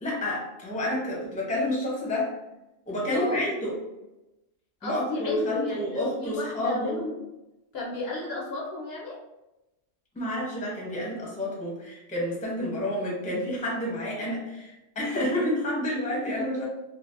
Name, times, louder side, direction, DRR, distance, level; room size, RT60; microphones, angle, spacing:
voice 1, 0.0-2.3 2.9-3.8 4.8-7.0 10.1-16.6, left 1 dB, 10° left, -4 dB, 0.6 m, -29 dB
voice 2, 3.1-3.6 4.8-5.8 6.2-7.1 7.7-9.2, left 2 dB, 60° left, -3 dB, 0.8 m, -33 dB
3.8 x 2.0 x 2.5 m, 0.96 s
omnidirectional pair, 1.2 m